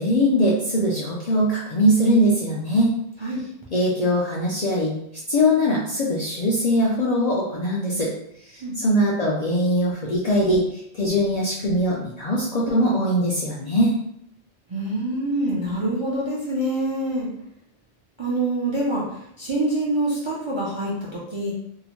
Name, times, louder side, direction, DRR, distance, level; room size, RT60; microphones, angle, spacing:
voice 1, 0.0-2.9 3.7-4.9 5.3-8.1 8.4-14.0, equal, 55° left, -5 dB, 0.4 m, -21 dB
voice 2, 14.7-17.3 18.2-21.5, right 1 dB, 40° right, -5 dB, 0.4 m, -25 dB
2.7 x 2.0 x 2.9 m, 0.74 s
omnidirectional pair, 1.1 m